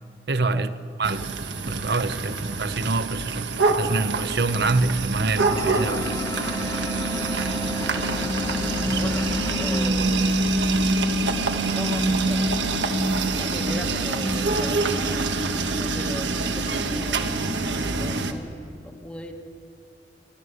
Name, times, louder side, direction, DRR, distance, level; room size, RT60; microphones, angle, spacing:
voice 1, 0.3-0.7 1.0-1.3 1.7-6.2 8.9-9.0, right 3 dB, 60° right, 0.8 m, -26 dB
sound 1, 1.0-18.3, right 2 dB, 75° right, 1.3 m, -25 dB
sound 2, 5.5-9.9, left 1 dB, 20° left, 1.3 m, -34 dB
voice 2, 7.7-8.1 8.9-9.3 9.6-10.3 11.7-12.9 13.2-17.4 18.0-19.4, equal, 5° left, 1.1 m, -38 dB
29.0 x 12.5 x 8.0 m
head